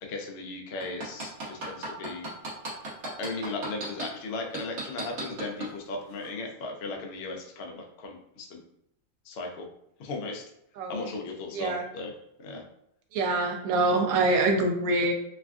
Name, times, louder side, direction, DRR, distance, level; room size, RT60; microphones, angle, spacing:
voice 1, 0.0-2.3 3.2-8.6 9.2-9.7 10.0-10.4 10.9-12.1 12.4-12.6, left 3 dB, 65° left, 2 dB, 0.6 m, -36 dB
sound 1, 0.8-4.1 4.5-5.7 6.2-6.3, right 3 dB, 60° right, 1.1 m, -34 dB
voice 2, 10.8-11.1 11.5-11.8 13.1-15.1, right 2 dB, 85° right, 2 dB, 1.0 m, -25 dB
3.3 x 2.3 x 2.3 m, 0.76 s
omnidirectional pair, 1.5 m